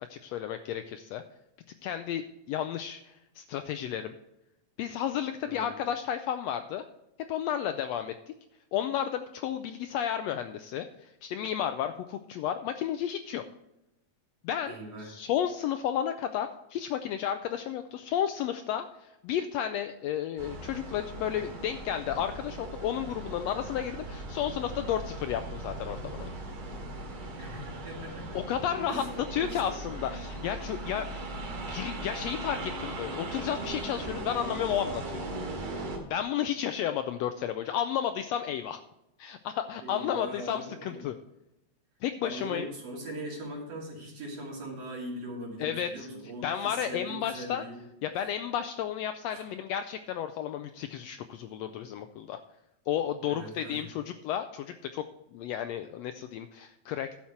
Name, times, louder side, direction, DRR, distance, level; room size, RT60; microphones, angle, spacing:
voice 1, 0.1-1.2 1.8-4.1 4.8-6.8 7.3-8.1 8.7-13.4 14.4-26.3 28.3-29.0 29.3-31.3 31.7-35.3 36.1-38.8 39.2-41.1 42.0-42.7 45.6-46.1 46.4-47.6 48.0-52.4 52.9-55.0 55.3-57.2, left 10 dB, 80° left, 9 dB, 1.5 m, -32 dB
voice 2, 5.4-5.8 14.7-15.1 27.4-28.4 28.9-29.8 39.8-41.0 42.2-47.8 49.3-49.5 53.3-53.9, right 1 dB, 55° right, -2 dB, 3.7 m, -41 dB
sound 1, 20.4-36.0, right 2 dB, 85° right, 3.8 m, -39 dB
12.0 x 7.2 x 4.4 m, 0.88 s
omnidirectional pair, 3.4 m